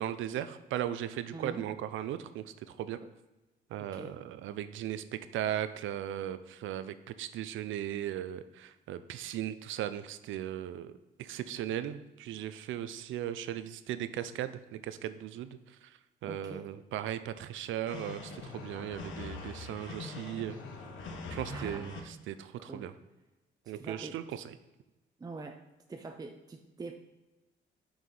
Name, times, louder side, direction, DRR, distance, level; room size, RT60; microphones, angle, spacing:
voice 1, 0.0-2.5 2.8-3.0 3.7-5.0 5.3-10.9 11.2-15.6 16.2-20.6 21.3-22.9 23.7-24.4, right 11 dB, 80° right, 12 dB, 0.5 m, -37 dB
voice 2, 1.3-1.6 3.0-3.1 3.8-4.2 16.2-16.7 21.5-21.9 22.7-22.9 23.7-24.4 25.2-25.6 25.9-27.0, right 3 dB, 20° right, 4 dB, 0.6 m, -44 dB
sound 1, 17.9-22.0, left 3 dB, 75° left, 1.2 m, -43 dB
6.0 x 4.8 x 5.4 m, 1.1 s
cardioid pair, 90°, 20 cm